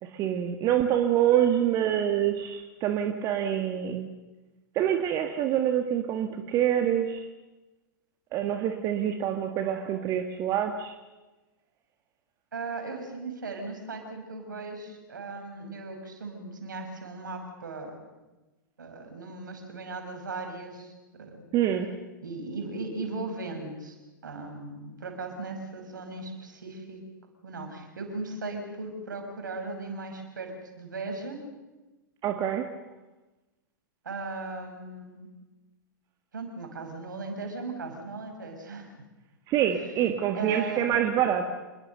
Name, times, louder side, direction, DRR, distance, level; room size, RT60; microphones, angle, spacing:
voice 1, 0.0-4.1 4.7-7.2 8.3-10.9 21.5-21.9 32.2-32.6 39.5-41.5, right 10 dB, 30° right, 6 dB, 1.8 m, -26 dB
voice 2, 12.5-18.0 18.8-21.5 22.2-24.0 24.2-27.0 27.4-31.4 34.0-35.3 36.3-39.0 39.7-39.8 40.3-40.8, right 3 dB, 65° right, 5 dB, 5.8 m, -37 dB
27.5 x 22.0 x 6.6 m, 1.1 s
figure-of-eight pair, 100°, 11 cm